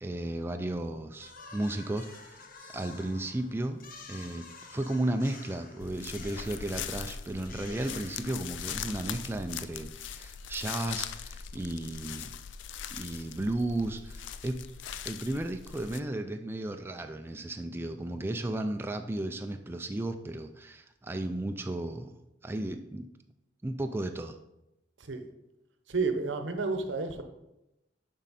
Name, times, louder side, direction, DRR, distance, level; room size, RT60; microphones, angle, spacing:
voice 1, 0.0-2.4 2.7-3.8 4.1-12.3 12.9-14.6 15.0-22.1 22.4-23.1 23.6-24.4, right 1 dB, 10° right, 6 dB, 0.3 m, -34 dB
sound 1, 1.2-8.8, left 4 dB, 50° left, 0.8 m, -50 dB
sound 2, 5.8-16.0, left 8 dB, 75° left, 0.4 m, -41 dB
voice 2, 25.9-27.2, right 4 dB, 80° right, 7 dB, 0.8 m, -31 dB
7.2 x 5.3 x 4.1 m, 0.90 s
head